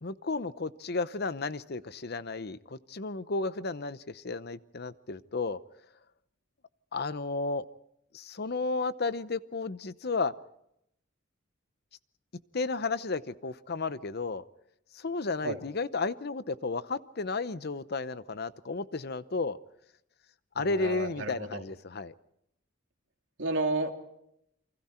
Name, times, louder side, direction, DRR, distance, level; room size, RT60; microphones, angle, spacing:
voice 1, 0.0-5.6 6.9-7.7 8.1-10.3 12.5-14.4 14.9-19.6 20.6-22.1, left 3 dB, 55° left, 14 dB, 0.8 m, -33 dB
voice 2, 20.5-21.6 23.4-23.9, right 2 dB, 80° right, 3 dB, 2.8 m, -32 dB
29.0 x 24.0 x 4.4 m, 0.78 s
head